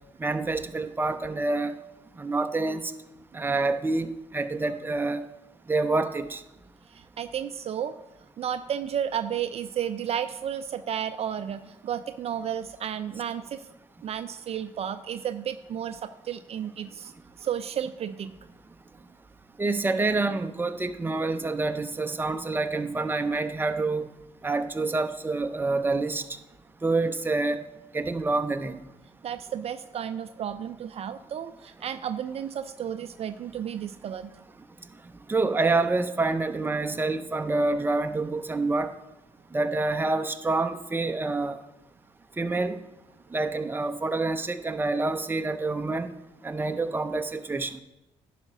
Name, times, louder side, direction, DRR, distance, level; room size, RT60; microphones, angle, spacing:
voice 1, 0.2-1.7 2.2-2.9 3.3-5.2 5.7-6.4 19.6-24.1 24.4-26.2 26.8-27.6 27.9-28.8 35.3-38.9 39.5-41.6 42.4-42.8 43.3-46.1 46.4-47.8, right 3 dB, 15° right, 8 dB, 0.7 m, -27 dB
voice 2, 6.9-8.0 8.4-13.6 14.0-17.1 17.4-18.3 29.2-34.3, right 9 dB, 50° right, 11 dB, 0.4 m, -32 dB
10.5 x 5.0 x 5.4 m, 0.95 s
cardioid pair, 85°, 13 cm